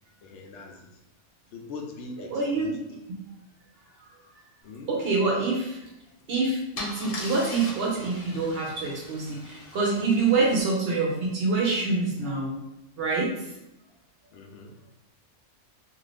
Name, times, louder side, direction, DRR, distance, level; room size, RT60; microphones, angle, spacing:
voice 1, 0.2-1.0 1.5-2.8 4.6-4.9 14.3-14.7, left 3 dB, 75° left, 2 dB, 0.9 m, -42 dB
voice 2, 2.3-2.7 4.9-5.8 6.3-12.6 13.0-13.5, right 3 dB, 65° right, -2 dB, 0.8 m, -26 dB
Car / Engine starting / Idling, 6.0-6.2 6.8-10.6, left 2 dB, 55° left, 0.4 m, -40 dB
2.5 x 2.5 x 3.3 m, 0.87 s
omnidirectional pair, 1.2 m